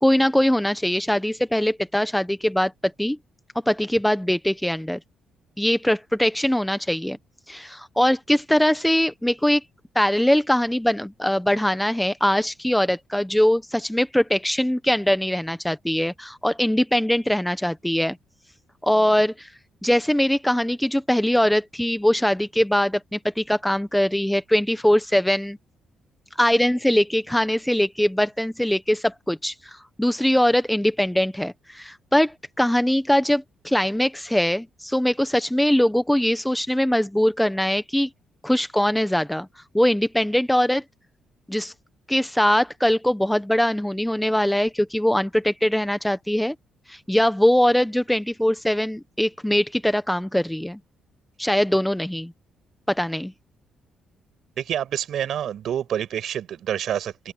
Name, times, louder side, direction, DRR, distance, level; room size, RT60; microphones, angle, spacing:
voice 1, 0.0-3.2 3.7-5.0 5.6-7.2 7.5-9.6 9.9-18.2 18.8-19.5 19.8-25.6 26.4-38.1 38.4-39.5 39.7-40.8 41.5-41.7 42.1-46.5 46.9-50.8 51.4-52.3 52.9-53.3, left 1 dB, 5° left, 1.1 m, -22 dB
voice 2, 54.6-57.3, right 10 dB, 70° right, 6.2 m, -27 dB
cardioid pair, 90°, 0 cm